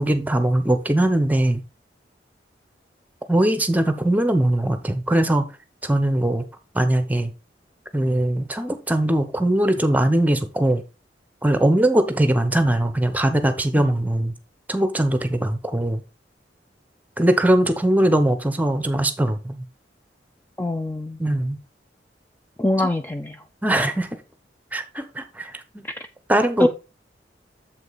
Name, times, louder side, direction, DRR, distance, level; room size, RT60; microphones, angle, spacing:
voice 1, 0.0-1.6 3.3-5.5 5.8-6.4 6.7-7.3 7.9-10.8 11.4-14.3 14.7-16.0 17.2-19.7 21.2-21.6 23.6-24.1 24.7-25.9 26.3-26.7, right 1 dB, 10° right, 0.8 m, -21 dB
voice 2, 20.6-21.2 22.6-23.4 23.7-23.8 26.6-26.7, left 2 dB, 10° left, 0.4 m, -23 dB
7.5 x 5.2 x 4.0 m
head